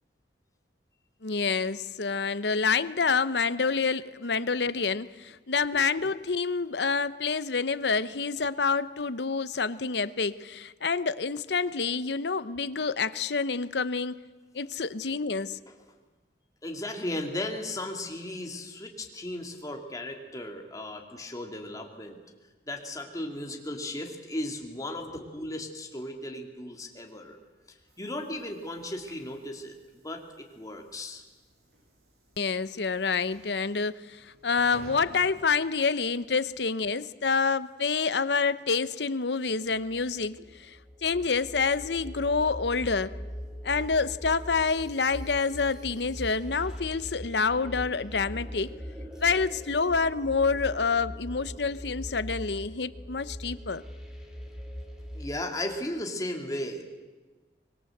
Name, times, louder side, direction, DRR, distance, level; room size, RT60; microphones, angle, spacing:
voice 1, 1.2-14.2 14.5-15.6 32.4-43.2 43.6-48.7 49.2-53.8, left 5 dB, 75° left, 15 dB, 0.9 m, -28 dB
voice 2, 16.6-22.2 22.7-27.4 27.7-29.8 30.0-31.2 55.1-56.8, left 1 dB, 20° left, 2 dB, 2.8 m, -36 dB
Train / Sliding door, 27.0-36.3, equal, 65° right, 6.4 m, -55 dB
sound 1, 39.7-55.4, equal, 5° right, 3.1 m, -41 dB
24.5 x 21.5 x 8.0 m, 1.3 s
head